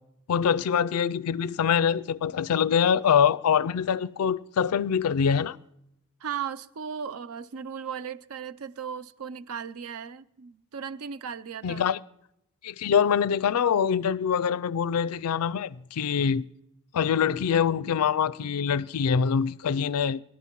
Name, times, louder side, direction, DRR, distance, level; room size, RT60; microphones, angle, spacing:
voice 1, 0.3-5.6 11.6-12.0 12.6-16.4 16.9-20.2, left 7 dB, 75° left, 0.4 m, -24 dB
voice 2, 6.2-11.8, right 7 dB, 70° right, 0.5 m, -36 dB
24.5 x 11.5 x 3.0 m
head